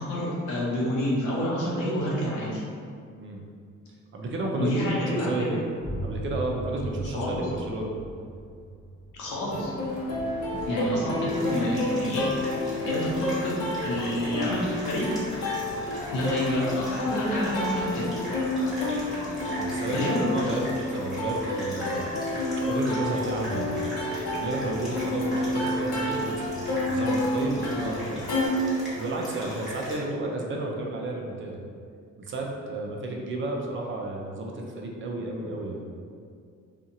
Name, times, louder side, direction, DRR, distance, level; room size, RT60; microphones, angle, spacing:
voice 1, 0.0-2.6 4.6-5.6 7.1-7.4 9.1-9.7 10.6-12.4 12.8-15.1 16.1-18.1 19.9-20.2, equal, 90° left, -5 dB, 0.8 m, -28 dB
voice 2, 4.1-4.8 5.2-5.6 6.0-7.9 10.1-10.3 19.5-22.4 22.7-23.8 24.4-26.6 26.8-28.3 29.0-31.6 32.2-35.9, right 2 dB, 40° right, 0 dB, 0.5 m, -32 dB
sound 1, 5.8-11.3, right 1 dB, 25° left, 0.9 m, -38 dB
Plucked string instrument, 9.5-28.5, left 2 dB, 55° left, 0.8 m, -30 dB
sound 2, 11.3-30.0, equal, ahead, 1.2 m, -40 dB
2.7 x 2.4 x 2.6 m, 2.3 s
cardioid pair, 90°, 30 cm